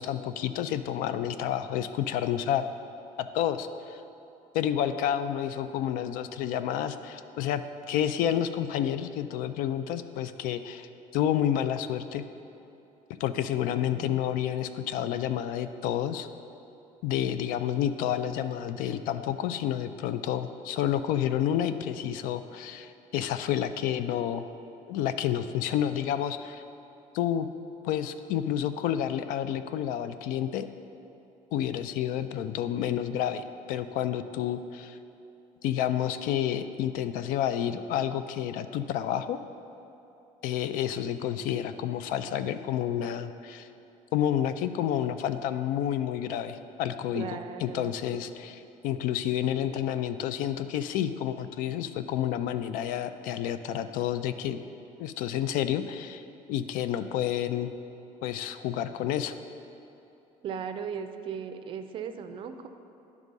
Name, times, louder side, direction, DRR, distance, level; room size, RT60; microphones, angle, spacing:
voice 1, 0.0-2.7 3.2-4.0 4.5-12.2 13.2-16.3 17.0-24.5 24.9-26.6 27.1-27.5 27.8-30.7 31.5-35.0 35.6-39.4 40.4-43.7 44.1-48.6 48.8-54.6 55.0-56.2 56.5-57.7 58.2-59.3, left 10 dB, 90° left, 11 dB, 0.4 m, -30 dB
voice 2, 13.9-14.2 47.1-48.0 60.4-62.7, right 7 dB, 40° right, 8 dB, 0.4 m, -37 dB
10.5 x 3.6 x 5.3 m, 2.9 s
cardioid pair, 175°, 14 cm